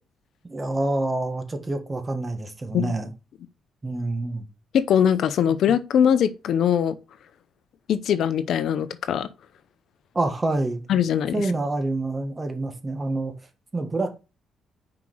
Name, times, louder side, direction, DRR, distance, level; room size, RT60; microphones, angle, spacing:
voice 1, 0.4-3.1 3.8-4.5 10.1-10.8 11.3-13.3 13.7-14.1, right 2 dB, 25° right, 1.7 m, -27 dB
voice 2, 4.7-7.0 7.9-9.3 10.9-11.4, left 8 dB, 70° left, 0.6 m, -21 dB
5.8 x 4.9 x 6.1 m
cardioid pair, 90°, 0 cm